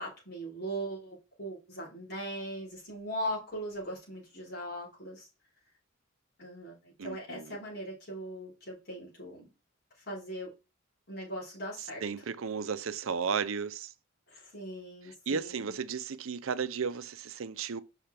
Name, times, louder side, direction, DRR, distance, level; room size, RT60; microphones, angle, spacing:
voice 1, 0.0-5.3 6.4-9.5 10.0-10.5 11.1-12.0 14.3-15.7, equal, 50° left, 4.0 m, -39 dB
voice 2, 7.0-7.6 12.0-13.9 15.3-17.8, right 6 dB, 80° right, 0.6 m, -34 dB
5.9 x 5.6 x 3.3 m
head